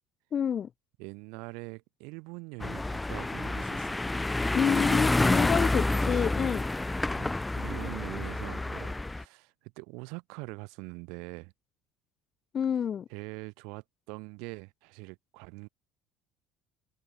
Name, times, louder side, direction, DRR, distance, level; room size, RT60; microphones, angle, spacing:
voice 1, 0.3-0.7 4.5-6.6 12.5-13.1, left 8 dB, 45° left, 1.3 m, -28 dB
voice 2, 1.0-4.0 7.2-11.5 13.1-15.7, right 30 dB, 80° right, 2.4 m, -43 dB
sound 1, 2.6-9.2, left 2 dB, 10° left, 0.7 m, -28 dB
open air
supercardioid pair, 90°, 0 cm